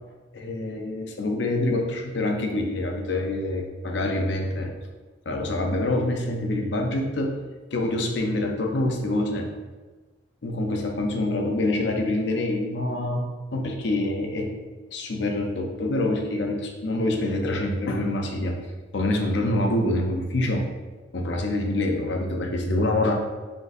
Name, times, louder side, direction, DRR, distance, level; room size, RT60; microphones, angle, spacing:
voice 1, 0.3-4.7 5.3-7.3 7.7-9.5 10.4-13.2 13.5-14.5 14.9-18.5 18.9-20.7 21.1-23.1, left 1 dB, 65° left, 2 dB, 0.6 m, -26 dB
3.9 x 3.7 x 2.6 m, 1.3 s
head